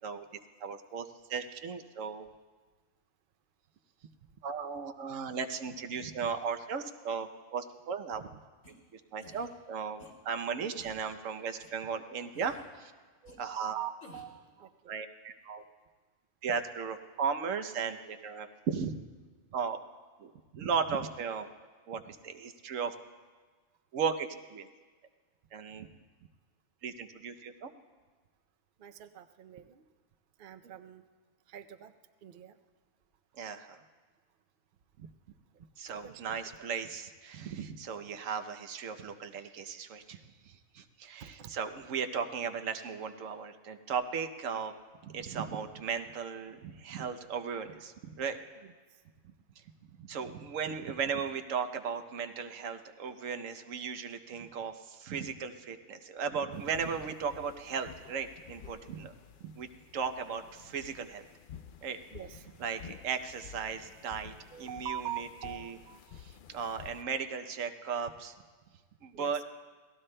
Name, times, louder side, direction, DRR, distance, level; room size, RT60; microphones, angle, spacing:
voice 1, 0.6-2.3 4.4-8.2 8.9-12.9 13.4-13.9 14.9-15.6 16.4-19.0 19.5-19.8 20.2-21.5 21.9-22.9 23.9-24.7 25.5-25.9 26.8-27.7 33.4-33.8 35.8-40.2 40.5-44.7 45.0-48.4 50.0-59.1 59.4-61.3 61.8-62.0 62.6-65.8 66.2-68.3 69.0-69.4, right 6 dB, 90° right, 8 dB, 1.1 m, -36 dB
sound 1, 8.6-8.7 9.2-9.5 10.0-10.1 10.7-11.1 11.6-11.7 12.3-12.7 13.2-13.4 14.0-14.4, left 1 dB, 85° left, 2.8 m, -53 dB
voice 2, 13.2-14.9 28.8-29.8 30.4-31.0 31.5-31.9 32.2-32.6 35.0-35.1 35.5-36.3 41.2-41.6 48.6-49.0 62.1-62.4 64.5-66.2 69.1-69.4, right 10 dB, 55° right, 8 dB, 0.7 m, -44 dB
sound 2, 56.5-67.0, left 8 dB, 60° left, 0.5 m, -52 dB
28.0 x 17.5 x 2.2 m, 1.4 s
omnidirectional pair, 1.3 m